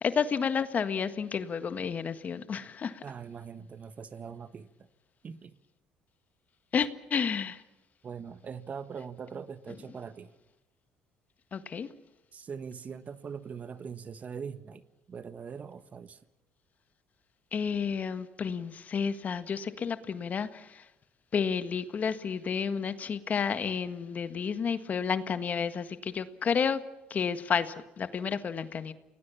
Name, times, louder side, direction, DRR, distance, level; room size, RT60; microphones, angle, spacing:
voice 1, 0.0-3.0 6.7-7.6 11.5-11.9 17.5-20.8 21.3-26.8 27.1-28.9, left 6 dB, 45° left, 11 dB, 1.6 m, -31 dB
voice 2, 3.0-4.7 5.2-5.6 8.0-10.3 12.3-16.2, right 6 dB, 40° right, 13 dB, 1.4 m, -42 dB
29.5 x 19.5 x 7.2 m, 0.99 s
supercardioid pair, 75°, 4 cm